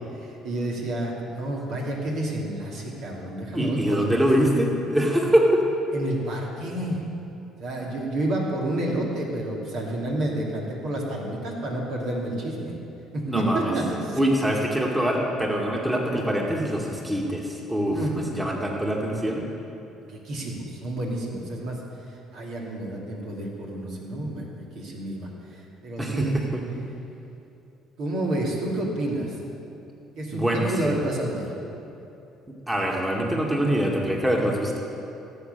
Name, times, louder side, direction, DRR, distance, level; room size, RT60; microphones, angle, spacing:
voice 1, 0.2-4.3 5.9-7.0 7.6-12.8 13.1-14.2 17.9-18.2 20.1-21.8 22.3-26.2 28.0-29.4 30.2-31.5, right 1 dB, 60° right, -2 dB, 2.8 m, -30 dB
voice 2, 3.5-5.7 13.3-13.7 14.2-19.5 26.0-26.6 30.3-30.9 32.7-34.8, equal, 10° right, -1 dB, 2.3 m, -24 dB
17.5 x 7.8 x 6.9 m, 2.8 s
hypercardioid pair, 55°, 0 cm